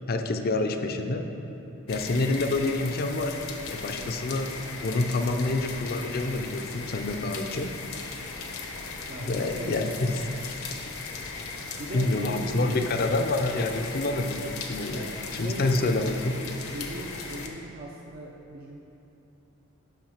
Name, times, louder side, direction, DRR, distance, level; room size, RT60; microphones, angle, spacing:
voice 1, 0.1-1.2 1.9-3.4 3.7-4.5 4.8-7.7 9.2-10.1 10.4-10.9 11.9-15.0 15.3-16.4, left 2 dB, 45° left, 6 dB, 0.5 m, -27 dB
sound 1, 1.9-17.5, left 4 dB, 75° left, 0.8 m, -38 dB
voice 2, 9.1-9.8 11.6-12.9 14.9-16.0 16.7-18.8, right 1 dB, 45° right, -1 dB, 0.6 m, -39 dB
7.4 x 5.6 x 5.7 m, 2.9 s
head